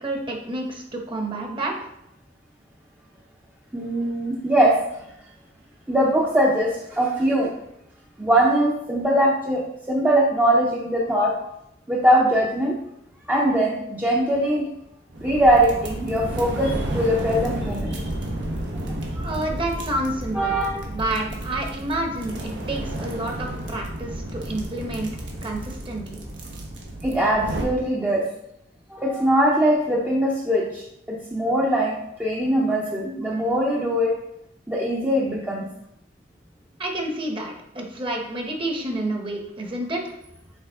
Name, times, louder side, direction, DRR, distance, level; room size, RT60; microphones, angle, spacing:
voice 1, 0.0-1.7 19.2-25.1 25.4-26.2 36.8-40.1, right 1 dB, 30° right, 1 dB, 1.0 m, -29 dB
voice 2, 3.7-4.7 5.9-7.5 8.2-9.6 9.9-11.3 11.9-12.8 13.3-14.7 15.2-18.0 20.3-20.9 27.0-28.2 28.9-31.9 32.2-34.1 34.7-35.7, right 1 dB, 10° right, -4 dB, 0.6 m, -21 dB
sound 1, 15.1-27.7, right 1 dB, 85° right, 1.3 m, -31 dB
6.4 x 4.5 x 3.6 m, 0.81 s
head